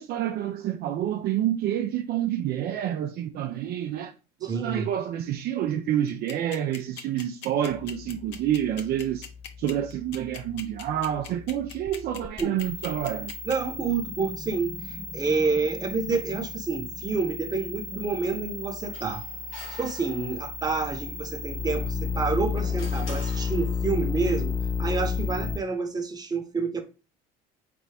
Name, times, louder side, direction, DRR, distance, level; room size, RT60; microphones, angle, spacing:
voice 1, 0.0-4.1 4.4-9.3 9.6-13.3, right 11 dB, 55° right, 0.5 m, -28 dB
voice 2, 4.4-4.9 12.4-12.6 13.4-19.2 19.7-26.8, right 4 dB, 20° right, 0.9 m, -28 dB
sound 1, 6.1-13.5, left 7 dB, 65° left, 0.9 m, -40 dB
sound 2, 7.7-25.6, left 5 dB, 10° left, 0.4 m, -33 dB
sound 3, 18.9-20.7 22.0-24.1, left 3 dB, 85° left, 1.5 m, -45 dB
4.0 x 3.4 x 3.4 m
cardioid pair, 105°, 19 cm